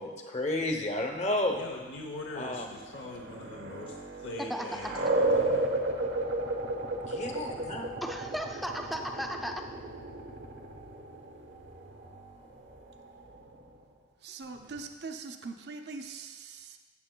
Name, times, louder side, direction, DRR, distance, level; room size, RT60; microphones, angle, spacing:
voice 1, 0.0-1.6 2.3-2.7 7.1-7.9, left 1 dB, 35° left, 0.8 m, -31 dB
voice 2, 1.6-5.7, left 3 dB, 85° left, 0.8 m, -43 dB
sound 1, 2.4-13.8, right 2 dB, 80° right, 1.0 m, -34 dB
voice 3, 4.5-4.9 8.0-9.7, equal, ahead, 0.4 m, -35 dB
voice 4, 14.2-16.8, right 4 dB, 60° right, 0.5 m, -42 dB
14.5 x 7.6 x 2.2 m
head